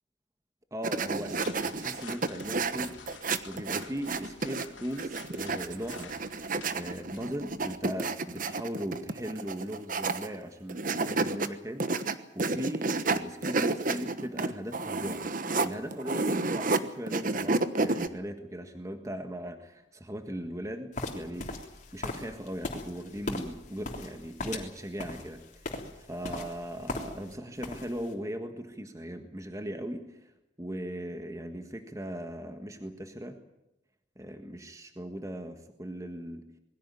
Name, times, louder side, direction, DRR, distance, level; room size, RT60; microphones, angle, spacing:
voice 1, 0.7-3.1 3.4-6.1 6.7-12.1 12.3-15.2 15.6-30.3 30.6-33.4 34.1-36.5, equal, 15° right, 6 dB, 1.5 m, -38 dB
sound 1, 0.8-4.7 5.0-10.4 10.7-11.5 11.8-16.8 17.1-18.1, right 3 dB, 45° right, 1.2 m, -30 dB
sound 2, 1.0-7.9, left 5 dB, 80° left, 3.4 m, -50 dB
sound 3, 20.9-27.3 27.6-28.1, left 2 dB, 40° left, 3.4 m, -38 dB
21.5 x 16.5 x 9.8 m, 0.89 s
head